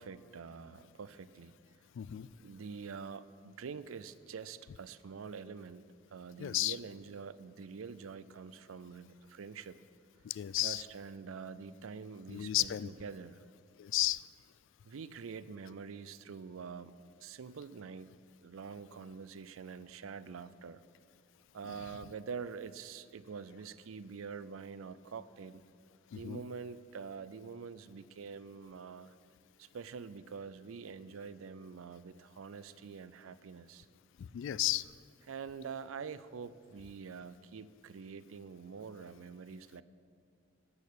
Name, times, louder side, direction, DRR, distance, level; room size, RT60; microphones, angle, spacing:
voice 1, 0.0-1.5 2.4-5.8 6.1-9.8 10.6-13.4 14.8-16.9 17.2-18.1 18.4-20.8 21.5-25.6 26.1-29.1 29.6-33.9 35.3-39.8, right 5 dB, 90° right, 15 dB, 0.5 m, -46 dB
voice 2, 2.0-2.3 6.4-6.8 10.3-10.8 12.3-12.9 13.8-14.2 26.1-26.4 34.2-34.8, left 14 dB, 65° left, 18 dB, 0.3 m, -33 dB
12.0 x 6.6 x 8.3 m, 2.3 s
head